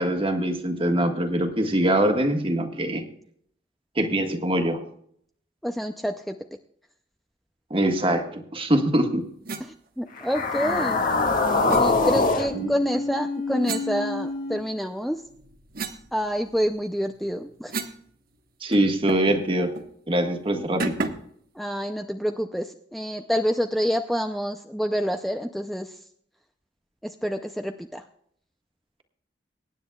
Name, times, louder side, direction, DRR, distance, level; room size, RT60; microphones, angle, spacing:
voice 1, 0.0-3.0 3.9-4.8 7.7-9.2 12.5-12.7 18.6-19.7 20.1-21.0, right 1 dB, 30° right, 5 dB, 1.5 m, -23 dB
voice 2, 5.6-6.4 9.6-11.0 11.8-15.2 16.1-17.7 21.6-26.0 27.0-28.0, equal, ahead, 5 dB, 0.5 m, -27 dB
sound 1, 9.4-9.7 11.7-11.9 13.6-14.7 15.1-18.0 18.3-18.4 18.7-19.4 19.7-19.9 20.8-21.3, right 3 dB, 55° right, 1.2 m, -34 dB
sound 2, 10.2-14.5, left 3 dB, 50° left, 1.8 m, -24 dB
23.5 x 10.0 x 2.3 m, 0.66 s
head